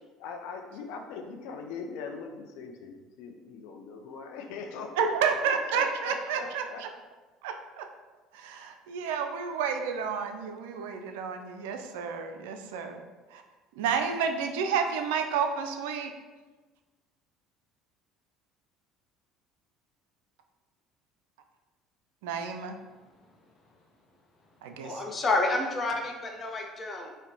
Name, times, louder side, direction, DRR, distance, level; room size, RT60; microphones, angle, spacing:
voice 1, 0.2-6.8, left 5 dB, 70° left, 3 dB, 0.4 m, -41 dB
voice 2, 5.0-6.9 7.4-7.9 8.3-13.0 13.3-13.4 13.8-16.1 22.2-22.8 24.6-25.0, right 6 dB, 75° right, 5 dB, 0.3 m, -30 dB
voice 3, 24.8-27.1, left 2 dB, 30° left, 2 dB, 0.7 m, -29 dB
5.2 x 2.1 x 2.7 m, 1.3 s
hypercardioid pair, 65°, 0 cm